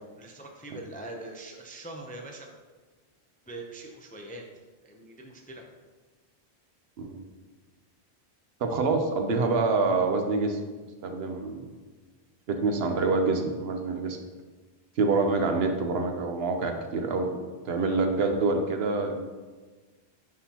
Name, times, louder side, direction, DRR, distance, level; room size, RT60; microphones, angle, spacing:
voice 1, 0.2-2.5 3.5-4.4 4.8-5.6, right 2 dB, 10° left, 1 dB, 0.4 m, -42 dB
voice 2, 8.6-10.6 11.0-11.6 12.5-14.2 15.0-17.4 17.6-19.3, right 3 dB, 70° right, 5 dB, 0.9 m, -26 dB
9.7 x 3.8 x 2.9 m, 1.3 s
omnidirectional pair, 1.1 m